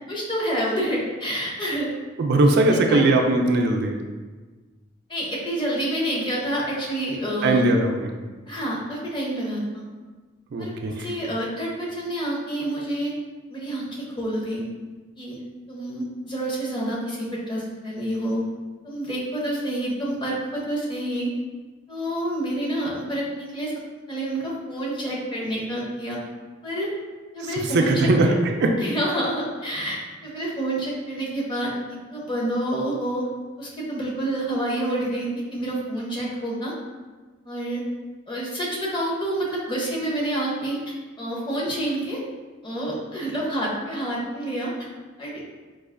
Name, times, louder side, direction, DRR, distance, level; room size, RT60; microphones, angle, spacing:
voice 1, 0.1-1.9 2.4-2.5 2.9-3.0 5.1-7.6 8.5-9.8 10.6-10.7 11.0-13.1 13.5-14.7 15.2-15.4 15.7-18.4 18.8-21.3 21.9-23.7 24.1-26.2 26.6-26.9 27.3-28.1 28.8-33.3 33.6-36.7 37.5-37.8 38.3-42.2 42.6-44.7 45.2-45.4, right 1 dB, 25° left, -4 dB, 0.8 m, -28 dB
voice 2, 2.2-4.0 7.4-8.1 10.5-11.1 27.7-28.7, right 2 dB, 60° right, 3 dB, 0.3 m, -20 dB
4.6 x 2.4 x 2.4 m, 1.4 s
head